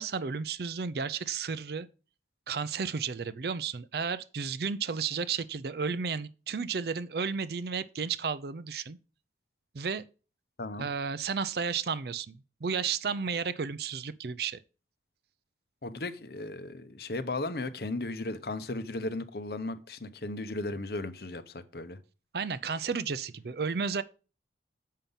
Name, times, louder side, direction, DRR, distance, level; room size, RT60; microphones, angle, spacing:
voice 1, 0.0-1.9 2.5-9.0 9.7-10.0 10.8-14.6 22.3-24.0, right 5 dB, 60° right, 0.5 m, -33 dB
voice 2, 15.8-22.0, left 2 dB, 55° left, 0.8 m, -36 dB
7.4 x 5.6 x 5.3 m
head